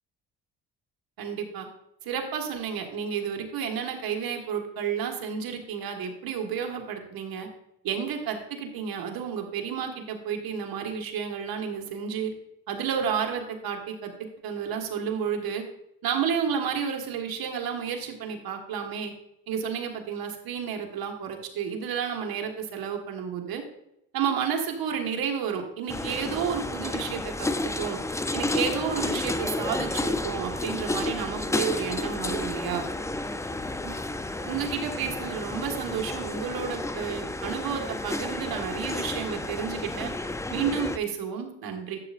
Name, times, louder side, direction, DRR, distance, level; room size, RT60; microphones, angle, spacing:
voice 1, 1.2-1.7 2.0-7.5 7.8-12.3 12.7-15.6 16.0-19.1 19.5-23.6 24.1-28.0 28.3-32.9 33.8-33.9 34.4-40.1 40.5-42.0, right 7 dB, 75° right, 3 dB, 1.6 m, -31 dB
sound 1, 25.9-41.0, left 2 dB, 10° left, 0.4 m, -31 dB
11.5 x 7.4 x 2.5 m, 0.81 s
cardioid pair, 75°, 37 cm